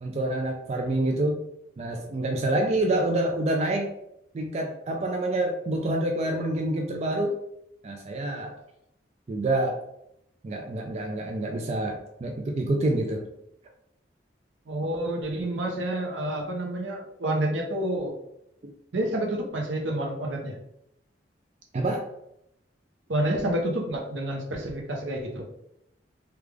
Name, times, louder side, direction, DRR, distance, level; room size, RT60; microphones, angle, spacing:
voice 1, 0.0-1.4 1.8-3.9 4.3-7.3 7.8-8.6 9.3-9.8 10.4-13.2 18.6-18.7 21.7-22.0, right 1 dB, 35° right, 2 dB, 0.3 m, -27 dB
voice 2, 14.7-18.2 18.9-20.5 23.1-25.4, right 1 dB, 85° right, 1 dB, 0.8 m, -29 dB
3.3 x 2.3 x 3.4 m, 0.78 s
head